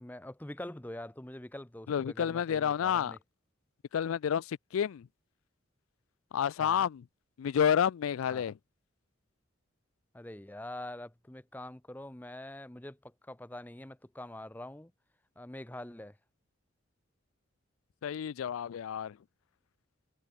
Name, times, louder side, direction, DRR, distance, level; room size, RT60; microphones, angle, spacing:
voice 1, 0.0-3.2 6.6-6.9 8.3-8.5 10.1-14.9 15.4-16.2, left 1 dB, 10° left, 0.6 m, -44 dB
voice 2, 1.9-3.2 3.9-5.1 6.3-7.0 7.4-8.5 18.0-19.2, left 8 dB, 85° left, 0.3 m, -30 dB
head